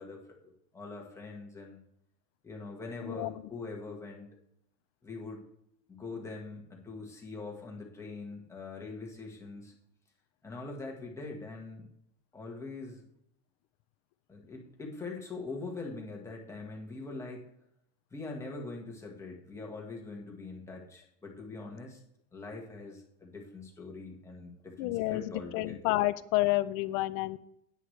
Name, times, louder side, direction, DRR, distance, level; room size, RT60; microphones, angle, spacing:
voice 1, 0.0-1.8 2.4-4.3 5.0-5.4 5.9-9.7 10.4-11.8 12.3-13.0 14.3-17.5 18.1-22.0 22.3-25.9, left 3 dB, 5° left, -1 dB, 1.4 m, -43 dB
voice 2, 3.0-3.4 24.8-27.4, left 17 dB, 40° left, 14 dB, 0.4 m, -30 dB
17.0 x 8.2 x 3.2 m, 0.77 s
cardioid pair, 180°, 38 cm